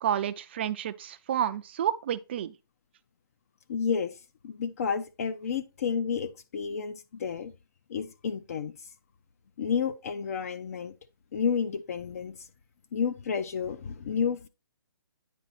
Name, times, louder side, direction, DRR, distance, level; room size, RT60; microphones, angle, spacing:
voice 1, 0.0-2.5, right 10 dB, 30° right, 0.4 m, -30 dB
voice 2, 3.7-7.5 7.9-8.8 9.6-11.0 11.3-12.5 12.9-14.5, left 6 dB, 40° left, 0.6 m, -31 dB
9.3 x 4.0 x 4.1 m
hypercardioid pair, 160°, 12 cm